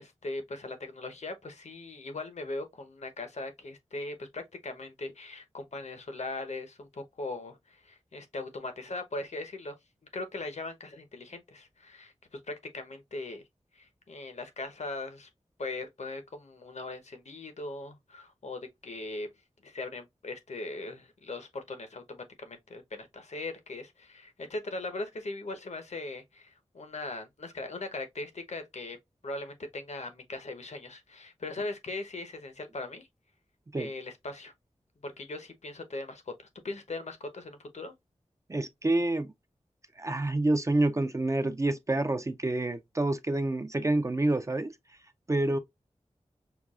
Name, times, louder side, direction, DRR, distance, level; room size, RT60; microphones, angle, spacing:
voice 1, 0.0-9.7 10.1-13.4 13.7-15.3 15.6-19.3 19.6-29.0 29.2-33.1 33.7-34.5 35.0-36.3 36.6-37.9, left 2 dB, 70° left, 0.9 m, -39 dB
voice 2, 38.5-39.3 40.0-44.7 45.3-45.6, right 2 dB, 25° right, 0.4 m, -28 dB
5.8 x 2.3 x 2.3 m
wide cardioid pair, 60°, 12 cm